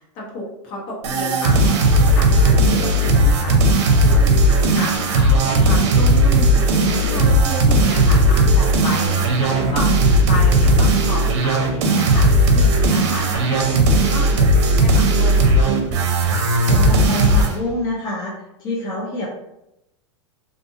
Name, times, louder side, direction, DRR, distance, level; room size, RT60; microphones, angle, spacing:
voice 1, 0.0-15.8, left 1 dB, 55° left, -4 dB, 1.2 m, -31 dB
sound 1, 1.0-17.6, right 1 dB, 65° right, 0.6 m, -16 dB
voice 2, 16.6-19.3, left 1 dB, 25° left, -6 dB, 0.7 m, -26 dB
2.6 x 2.5 x 2.6 m, 0.87 s
hypercardioid pair, 120°, 16 cm